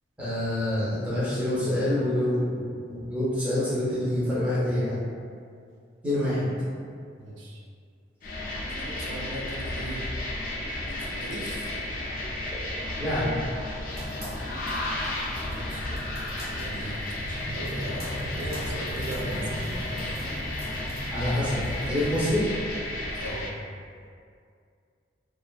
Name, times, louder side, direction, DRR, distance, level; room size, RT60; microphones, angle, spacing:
voice 1, 0.2-2.6 2.9-5.0 6.0-6.5 13.0-13.3 21.1-22.4, left 1 dB, 5° right, -11 dB, 0.7 m, -26 dB
voice 2, 6.1-6.5 7.2-7.6 8.7-10.1 10.9-11.7 15.5-16.0 16.4-20.0 23.2-23.5, right 1 dB, 80° right, -4 dB, 0.4 m, -38 dB
sound 1, 8.2-23.5, left 1 dB, 45° left, 0.3 m, -33 dB
sound 2, 13.8-22.2, equal, 30° right, 1.0 m, -40 dB
2.5 x 2.4 x 2.3 m, 2.3 s
head